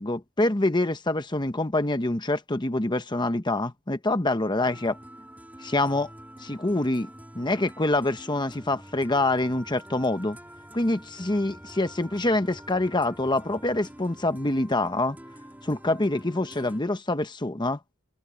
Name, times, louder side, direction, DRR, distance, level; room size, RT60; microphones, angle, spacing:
voice 1, 0.0-5.0 5.6-6.1 6.4-7.1 7.3-10.4 10.7-15.2 15.6-17.8, left 2 dB, 20° left, 1.1 m, -26 dB
sound 1, 4.6-16.8, equal, 10° right, 1.7 m, -47 dB
head